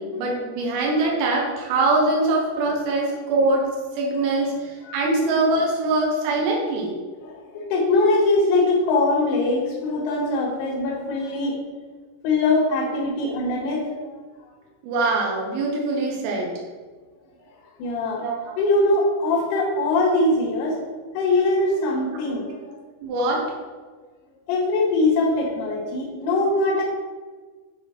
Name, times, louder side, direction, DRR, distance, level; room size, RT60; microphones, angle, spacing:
voice 1, 0.0-3.7 3.9-6.9 14.8-16.5 18.2-18.6 23.0-23.4, right 2 dB, 85° right, -2 dB, 3.8 m, -23 dB
voice 2, 7.2-11.6 12.2-14.2 17.8-18.3 18.6-20.8 21.1-22.6 24.5-26.8, left 2 dB, 85° left, -4 dB, 4.2 m, -22 dB
10.0 x 4.2 x 4.4 m, 1.4 s
omnidirectional pair, 5.8 m